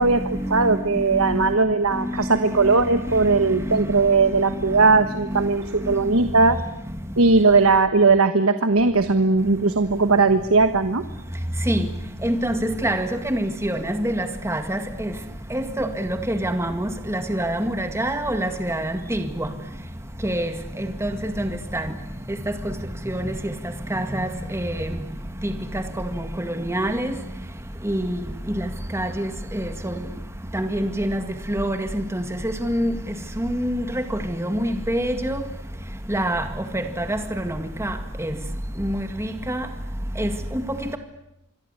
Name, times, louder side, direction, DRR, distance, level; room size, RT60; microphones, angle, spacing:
voice 1, 0.0-6.6 7.2-11.0, right 3 dB, 70° right, 10 dB, 1.3 m, -19 dB
voice 2, 12.2-14.8 15.5-19.5 20.2-20.5 21.0-21.1 21.4-21.8 23.1-23.3 23.9-24.7 26.6-27.1 27.9-28.2 28.9-29.3 29.6-29.9 30.5-31.2 31.5-31.8 32.1-32.2 32.7-32.9 33.5-33.8 34.4-35.4 36.1-36.4 37.0-37.2 37.4-37.5 37.8-37.9 38.2-38.3 38.8-39.0 39.5-39.6 40.2-40.3, right 1 dB, 10° right, 7 dB, 2.0 m, -25 dB
26.5 x 23.0 x 8.3 m, 0.87 s
head